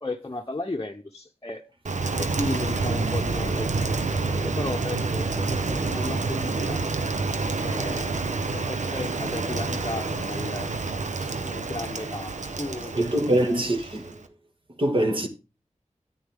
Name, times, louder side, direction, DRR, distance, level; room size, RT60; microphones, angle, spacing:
voice 1, 0.0-1.6 2.2-6.8 7.6-8.1 8.5-10.7 11.4-12.9 13.4-13.6, left 2 dB, 30° left, 0.9 m, -34 dB
Rain, 1.8-14.3, right 3 dB, 75° right, 0.9 m, -28 dB
voice 2, 12.9-14.3 14.8-15.3, right 1 dB, 45° right, 2.0 m, -24 dB
10.0 x 8.9 x 3.7 m
cardioid pair, 45°, 13 cm